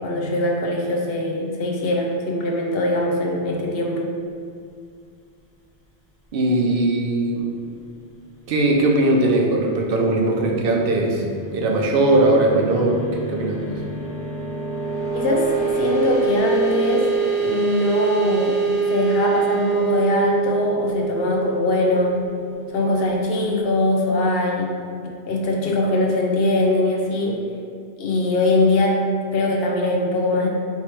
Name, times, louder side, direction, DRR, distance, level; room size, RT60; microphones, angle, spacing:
voice 1, 0.0-4.1 15.1-17.1 17.4-18.6 18.9-22.2 22.7-24.7 25.3-27.4 28.0-29.0 29.3-30.5, left 2 dB, 65° left, -1 dB, 0.8 m, -21 dB
voice 2, 6.3-7.5 8.5-11.2 11.5-13.8, right 2 dB, 60° right, 0 dB, 0.8 m, -19 dB
sound 1, 10.9-23.2, right 4 dB, 15° left, 0.6 m, -25 dB
3.4 x 3.0 x 4.4 m, 2.4 s
omnidirectional pair, 1.2 m